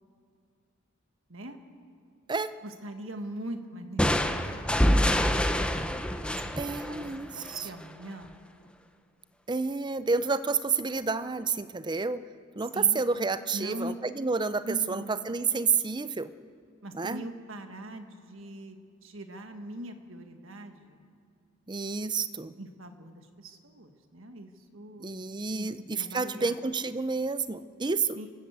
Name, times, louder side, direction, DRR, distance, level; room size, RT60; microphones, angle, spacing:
voice 1, 2.6-5.4 6.1-7.1 7.3-8.4 12.7-13.0 13.5-14.0 14.6-15.2 16.8-21.0 22.6-25.2 25.5-25.7 26.0-26.6 28.2-28.3, right 1 dB, 70° right, 6 dB, 1.7 m, -42 dB
sound 1, 4.0-7.7, equal, 5° left, 0.9 m, -26 dB
voice 2, 6.6-7.7 9.5-12.2 12.6-16.3 16.9-17.2 21.7-22.5 25.0-28.3, right 4 dB, 20° right, 13 dB, 0.6 m, -29 dB
28.5 x 13.0 x 8.1 m, 2.3 s
head